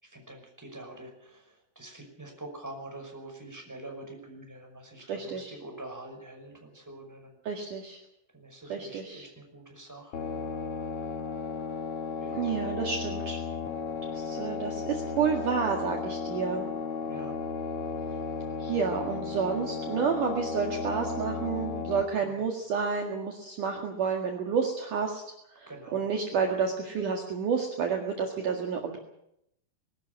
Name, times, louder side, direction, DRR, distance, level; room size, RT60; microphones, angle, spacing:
voice 1, 0.0-7.4 8.3-10.5 12.2-12.6 17.1-17.4 22.2-22.4 25.7-26.1, right 1 dB, 5° right, 2 dB, 5.4 m, -45 dB
voice 2, 5.1-5.6 7.4-8.0 8.7-9.2 12.3-13.4 14.1-16.7 18.6-25.2 25.5-29.0, right 6 dB, 55° right, 2 dB, 3.1 m, -30 dB
sound 1, 10.1-22.0, left 5 dB, 60° left, 1.5 m, -34 dB
21.5 x 13.0 x 9.5 m, 0.79 s
omnidirectional pair, 4.9 m